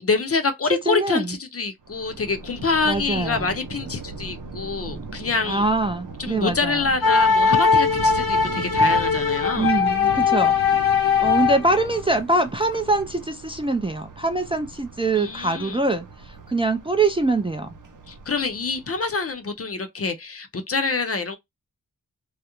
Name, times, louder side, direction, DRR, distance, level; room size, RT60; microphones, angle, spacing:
voice 1, 0.0-5.7 6.2-9.7 15.2-15.8 18.1-21.4, left 4 dB, 40° left, 0.6 m, -26 dB
voice 2, 0.7-1.4 2.9-3.5 5.5-6.8 9.6-10.5 11.2-17.7, right 2 dB, 15° right, 0.4 m, -23 dB
Thunder, 1.8-19.2, right 4 dB, 60° right, 0.7 m, -39 dB
sound 1, 7.0-11.8, left 5 dB, 90° left, 0.9 m, -20 dB
2.4 x 2.0 x 2.9 m
wide cardioid pair, 85°, 36 cm